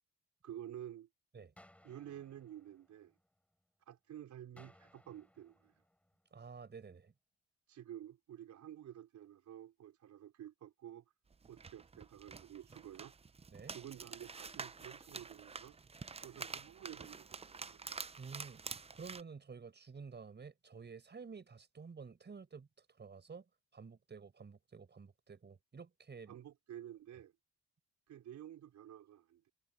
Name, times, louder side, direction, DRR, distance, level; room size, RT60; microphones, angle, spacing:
voice 1, 0.4-1.1 1.8-3.1 3.9-5.7 7.7-11.0 11.5-13.1 13.7-15.8 16.2-17.9 26.3-27.3 28.1-29.5, right 11 dB, 70° right, 4.6 m, -51 dB
sound 1, 1.6-3.6 4.6-6.6, left 1 dB, 5° left, 4.9 m, -65 dB
voice 2, 6.3-7.1 13.5-13.8 18.2-23.4 23.7-26.4, right 5 dB, 35° right, 5.7 m, -51 dB
sound 2, 11.3-19.2, right 4 dB, 20° right, 0.6 m, -48 dB
cardioid pair, 90°, 30 cm